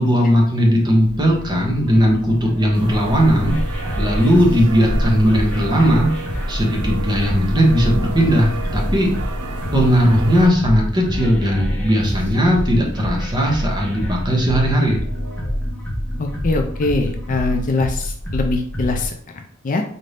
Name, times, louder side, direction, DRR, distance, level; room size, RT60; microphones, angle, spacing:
voice 1, 0.0-6.1 6.5-9.1 9.7-15.0, equal, 20° right, -1 dB, 0.8 m, -17 dB
sound 1, 1.0-19.1, equal, 5° left, 0.8 m, -27 dB
sound 2, 2.7-10.5, right 1 dB, 75° right, 0.5 m, -28 dB
voice 2, 16.2-19.8, left 3 dB, 35° left, 4 dB, 0.4 m, -23 dB
4.1 x 2.6 x 3.3 m, 0.62 s
head